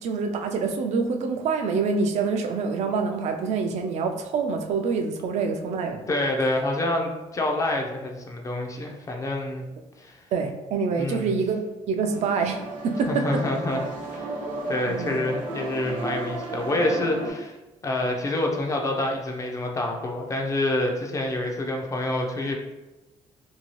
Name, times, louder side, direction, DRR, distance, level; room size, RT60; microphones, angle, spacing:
voice 1, 0.0-6.0 10.3-12.6 12.8-13.4 14.9-15.2, right 5 dB, 65° right, 5 dB, 0.4 m, -26 dB
voice 2, 6.1-9.6 10.0-10.2 10.9-11.3 13.1-13.8 14.1-14.3 14.7-17.6 17.8-22.6, left 1 dB, 25° left, 2 dB, 0.4 m, -27 dB
sound 1, 12.1-17.3, right 2 dB, 85° right, 0.8 m, -34 dB
2.7 x 2.7 x 3.0 m, 1.1 s
cardioid pair, 135°, 12 cm